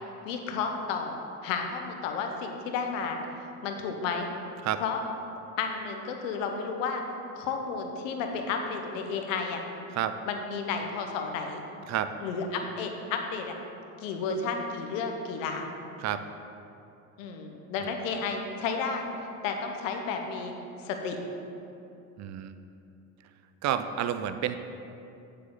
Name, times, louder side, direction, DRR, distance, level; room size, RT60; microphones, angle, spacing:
voice 1, 0.2-3.2 3.6-4.3 4.8-5.0 5.6-7.0 7.3-9.6 10.3-11.6 12.2-13.6 14.0-15.7 17.2-19.1 19.4-20.5 20.8-21.2, left 5 dB, 90° left, 4 dB, 1.0 m, -32 dB
voice 2, 22.2-22.5 23.6-24.6, right 10 dB, 50° right, 10 dB, 0.5 m, -30 dB
8.9 x 6.6 x 3.9 m, 2.7 s
supercardioid pair, 100°, 37 cm